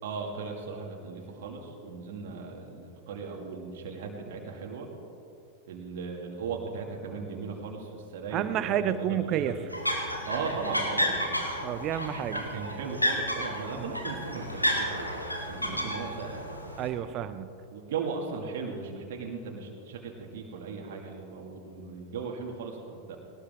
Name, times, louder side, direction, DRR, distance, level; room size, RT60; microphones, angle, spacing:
voice 1, 0.0-4.9 5.7-9.6 10.3-11.4 12.3-14.4 14.8-15.1 15.5-16.4 17.7-23.2, right 5 dB, 55° right, 0 dB, 2.5 m, -37 dB
voice 2, 8.3-9.5 11.6-12.4 15.7-15.9 16.8-17.5, right 11 dB, 35° right, 13 dB, 0.8 m, -30 dB
sound 1, 9.7-16.9, equal, 90° left, 2.1 m, -31 dB
20.0 x 18.5 x 3.8 m, 2.6 s
figure-of-eight pair, 90°, 0 cm